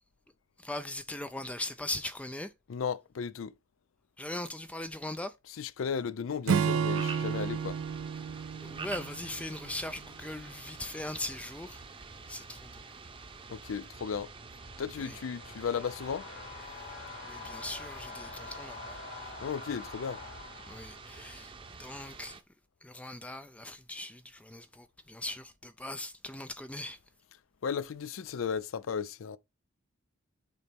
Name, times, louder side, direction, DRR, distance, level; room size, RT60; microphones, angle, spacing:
voice 1, 0.6-2.5 4.2-5.4 8.6-11.8 12.3-13.0 15.0-15.2 16.9-19.0 20.7-22.4 22.8-27.0, left 1 dB, 5° left, 0.3 m, -40 dB
voice 2, 2.7-3.5 5.6-7.8 13.5-14.3 14.8-16.2 19.4-20.2 27.6-29.4, left 6 dB, 75° left, 0.4 m, -35 dB
Acoustic guitar / Strum, 6.5-9.9, right 7 dB, 85° right, 0.4 m, -31 dB
sound 1, 6.7-22.4, right 4 dB, 25° right, 0.8 m, -47 dB
sound 2, 14.4-21.5, left 4 dB, 60° left, 2.1 m, -46 dB
6.8 x 4.2 x 3.5 m
head